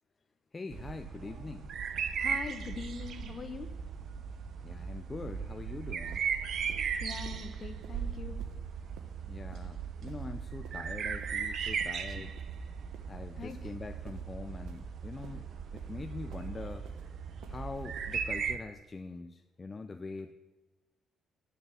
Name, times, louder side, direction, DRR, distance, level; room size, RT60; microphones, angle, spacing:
voice 1, 0.5-2.1 4.6-6.2 9.3-12.4 13.1-15.5 15.7-16.9 17.5-20.3, left 3 dB, 25° left, 8 dB, 0.5 m, -43 dB
sound 1, 0.7-18.6, right 6 dB, 60° right, 0.7 m, -37 dB
voice 2, 2.2-3.7 6.7-8.4 12.1-12.2 13.4-13.6, left 5 dB, 45° left, 9 dB, 1.1 m, -43 dB
sound 2, 5.6-5.7 6.1-6.3 6.7-6.9 7.2-7.4 7.8-8.0 8.4-8.6 9.0-9.1 9.5-9.7 10.1-10.3 10.6-10.8 11.2-11.4 11.8-12.0 12.4-12.6 12.9-13.1 13.5-13.7 14.0-14.2 14.7-14.8 15.2-15.4 15.8-15.9 16.3-16.5 16.8-17.0 17.4-17.6 18.0-18.1, right 6 dB, 85° right, 1.3 m, -54 dB
8.7 x 6.7 x 8.5 m, 1.2 s
cardioid pair, 90°, 0 cm